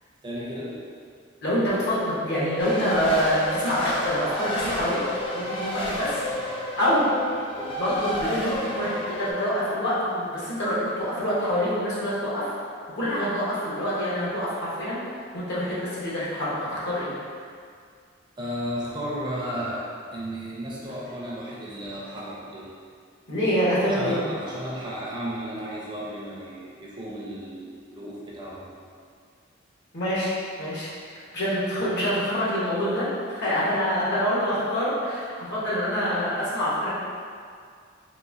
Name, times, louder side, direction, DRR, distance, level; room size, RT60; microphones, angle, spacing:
voice 1, 0.2-0.8 18.4-22.7 23.8-28.7, equal, 25° right, -6 dB, 0.5 m, -34 dB
voice 2, 1.4-5.0 5.3-7.1 7.5-12.5 13.0-17.1 23.3-24.2 29.9-37.0, equal, 60° left, -8 dB, 1.0 m, -26 dB
Race car auto racing, 2.6-9.3, left 1 dB, 30° left, 0.4 m, -30 dB
4.0 x 2.6 x 2.4 m, 2.2 s
head